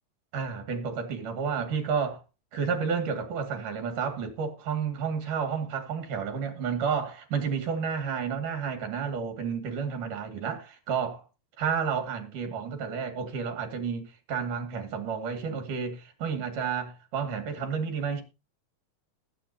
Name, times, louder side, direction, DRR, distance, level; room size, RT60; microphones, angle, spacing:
voice 1, 0.3-2.2 2.5-11.3 11.6-18.2, right 6 dB, 75° right, 3.9 m, -31 dB
20.0 x 8.7 x 2.8 m
omnidirectional pair, 3.7 m